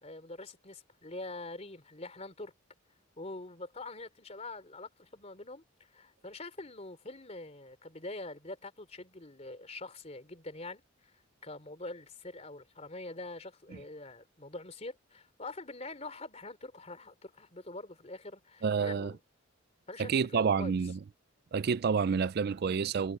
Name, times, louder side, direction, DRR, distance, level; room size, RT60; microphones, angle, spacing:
voice 1, 0.0-2.5 3.2-19.2 19.9-20.8, left 2 dB, 35° left, 3.4 m, -44 dB
voice 2, 18.6-19.1 20.0-21.0 21.5-23.2, right 6 dB, 50° right, 0.4 m, -29 dB
head